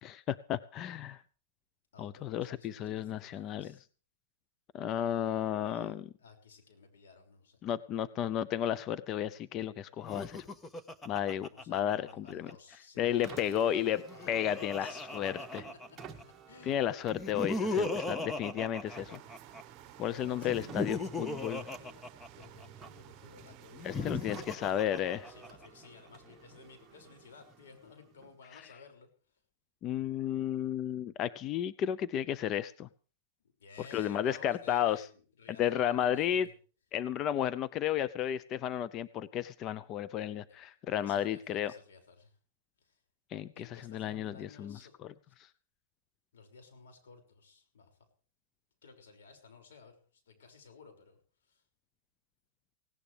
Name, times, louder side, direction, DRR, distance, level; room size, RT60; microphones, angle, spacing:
voice 1, 0.0-1.2 2.0-3.8 4.7-6.1 7.6-10.4 11.1-12.5 13.0-14.0 14.3-15.6 16.7-19.2 20.0-21.6 23.8-25.3 29.8-32.9 33.9-35.1 35.6-36.5 36.9-41.7 43.3-44.8 45.4-45.5, left 10 dB, 35° left, 16 dB, 0.6 m, -33 dB
voice 2, 1.9-3.8 5.5-5.9 6.2-7.6 11.5-16.7 20.2-22.0 22.3-24.9 25.2-29.4 33.4-36.5 40.5-40.6 41.0-42.4 42.8-43.0 43.5-44.9 45.2-45.3 46.3-48.0 48.8-51.6, left 5 dB, 85° left, 5 dB, 6.1 m, -55 dB
Laughter, 10.0-12.5 13.8-16.2 17.1-19.6 20.4-22.9 23.7-25.7, left 2 dB, 10° left, 1.3 m, -37 dB
Car, 13.1-28.5, right 6 dB, 20° right, 1.9 m, -53 dB
sound 1, 18.8-24.3, right 13 dB, 40° right, 1.2 m, -54 dB
18.5 x 17.5 x 3.5 m, 0.40 s
hypercardioid pair, 135°, 0 cm